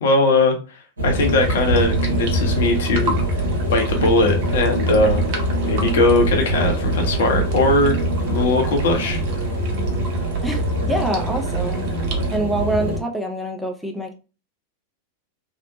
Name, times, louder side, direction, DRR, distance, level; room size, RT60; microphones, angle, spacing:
voice 1, 0.0-3.2 3.7-8.0 8.3-9.2, left 2 dB, 60° left, 2 dB, 0.7 m, -20 dB
sound 1, 1.0-13.0, right 1 dB, 75° right, 0.9 m, -23 dB
sound 2, 1.1-12.4, right 3 dB, 45° right, 0.6 m, -36 dB
voice 2, 10.4-11.9 12.3-14.1, right 1 dB, ahead, 2 dB, 0.4 m, -25 dB
2.8 x 2.1 x 2.5 m, 0.33 s
figure-of-eight pair, 90°, 0 cm